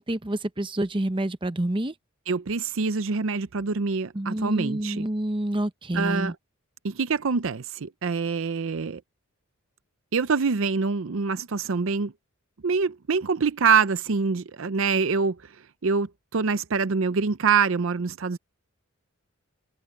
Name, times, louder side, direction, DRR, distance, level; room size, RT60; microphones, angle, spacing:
voice 1, 0.0-1.9 4.1-6.3, right 1 dB, 20° right, 0.9 m, -28 dB
voice 2, 2.3-5.1 5.9-6.3 6.8-9.0 10.1-12.1 12.6-15.4 15.8-18.4, right 5 dB, 60° right, 0.6 m, -25 dB
head